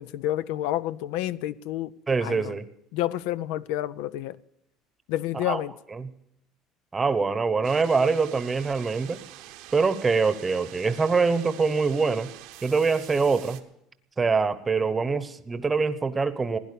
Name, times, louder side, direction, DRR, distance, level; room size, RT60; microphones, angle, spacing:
voice 1, 0.0-1.9 2.2-2.5 2.9-4.4 5.1-5.7, left 14 dB, 80° left, 0.4 m, -29 dB
voice 2, 2.1-2.7 5.3-5.6 5.9-6.1 6.9-9.2 9.7-12.3 12.6-13.6 14.2-16.6, right 4 dB, 20° right, 0.9 m, -24 dB
sound 1, 7.6-13.6, right 14 dB, 80° right, 1.1 m, -46 dB
16.5 x 10.5 x 6.8 m
cardioid pair, 125°, 0 cm